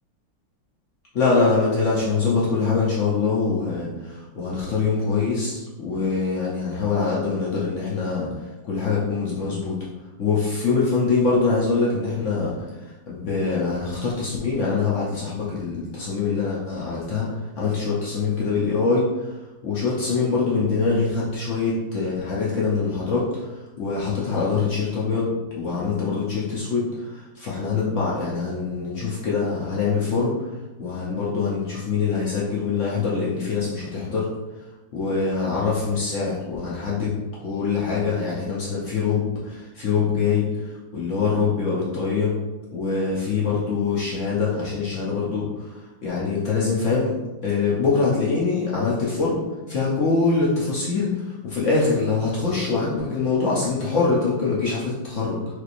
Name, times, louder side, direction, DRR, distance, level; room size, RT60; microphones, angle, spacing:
voice 1, 1.1-8.3 8.6-9.8 10.2-12.5 13.1-17.3 17.6-19.1 19.6-23.5 23.8-25.3 25.6-30.3 30.8-34.3 34.9-37.1 37.4-40.4 40.9-42.3 42.7-45.5 46.0-47.1 47.4-49.4 49.7-55.5, left 4 dB, 70° left, -6 dB, 0.7 m, -24 dB
3.2 x 3.1 x 2.5 m, 1.1 s
omnidirectional pair, 2.1 m